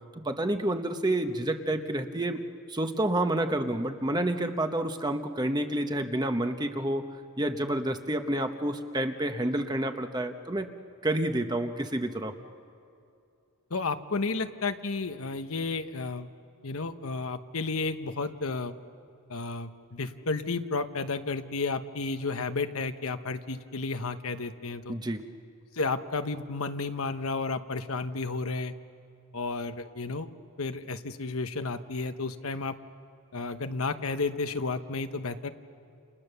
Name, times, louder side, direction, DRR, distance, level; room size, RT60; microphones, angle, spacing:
voice 1, 0.1-2.4 2.7-7.1 7.4-10.7 11.0-12.3 24.9-25.2, right 1 dB, 20° right, 7 dB, 1.1 m, -29 dB
voice 2, 13.7-16.3 16.6-18.7 19.3-24.9 25.7-28.7 29.3-30.3 30.6-32.7 33.3-35.5, left 3 dB, 70° left, 9 dB, 1.1 m, -32 dB
30.0 x 28.5 x 6.9 m, 2.6 s
head